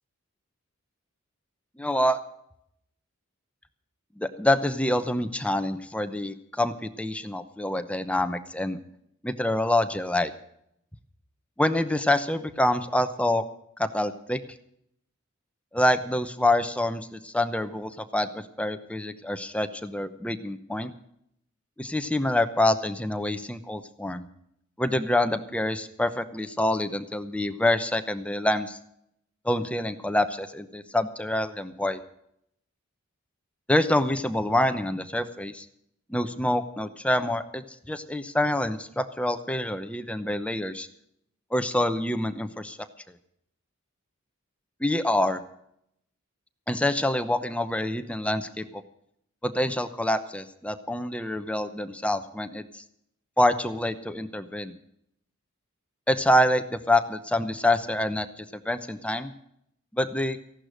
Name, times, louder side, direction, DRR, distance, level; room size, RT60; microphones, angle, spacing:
voice 1, 1.8-2.2 4.2-8.8 9.2-10.3 11.6-13.4 13.8-14.4 15.7-20.9 21.8-24.3 24.8-28.8 29.4-32.0 33.7-35.6 36.1-40.9 41.5-42.8 44.8-45.4 46.7-48.6 49.4-52.8 53.4-54.7 56.1-59.3 59.9-60.4, left 1 dB, 5° left, 10 dB, 0.8 m, -26 dB
15.5 x 11.5 x 6.4 m, 0.73 s
head